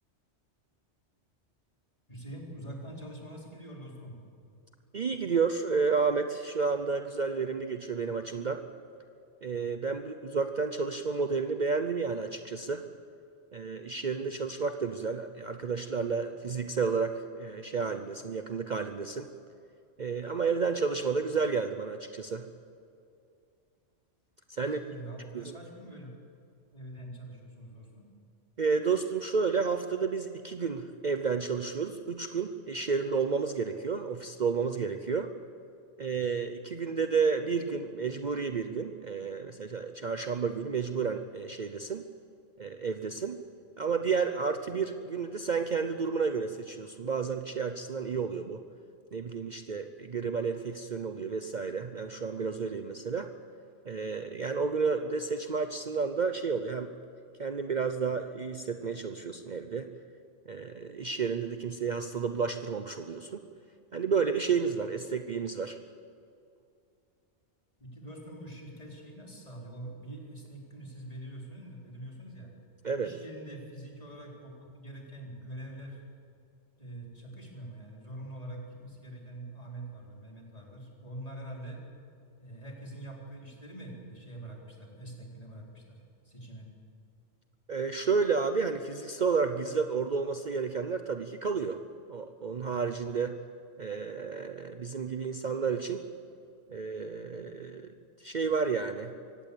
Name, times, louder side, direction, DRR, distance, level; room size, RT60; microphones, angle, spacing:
voice 1, 2.1-4.2 24.5-26.1 26.7-28.1 67.8-72.5 73.0-76.0 76.8-81.8 82.4-86.7, right 1 dB, 30° left, -1 dB, 4.3 m, -44 dB
voice 2, 4.9-8.6 9.4-12.8 13.5-19.3 20.0-22.5 24.5-24.8 25.3-25.5 28.6-35.3 36.0-42.0 42.6-43.4 43.8-48.6 49.1-53.3 53.8-56.9 57.4-59.9 60.5-63.4 63.9-65.8 72.8-73.1 87.7-91.8 92.1-93.4 93.8-96.0 96.7-99.1, right 5 dB, 45° right, 8 dB, 0.9 m, -31 dB
24.0 x 17.0 x 8.6 m, 2.5 s
omnidirectional pair, 1.2 m